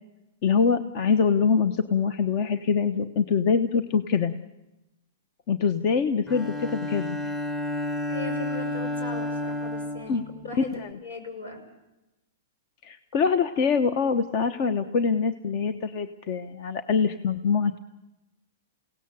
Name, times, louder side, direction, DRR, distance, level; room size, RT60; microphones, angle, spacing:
voice 1, 0.4-4.3 5.5-7.2 10.1-10.2 10.6-11.0 12.8-17.8, left 5 dB, 45° left, 10 dB, 1.0 m, -24 dB
Bowed string instrument, 6.3-10.9, left 1 dB, 20° left, 1.7 m, -31 dB
voice 2, 8.1-10.7 11.0-11.6, left 3 dB, 90° left, 5 dB, 5.8 m, -38 dB
28.5 x 17.5 x 7.1 m, 0.98 s
hypercardioid pair, 135°, 0 cm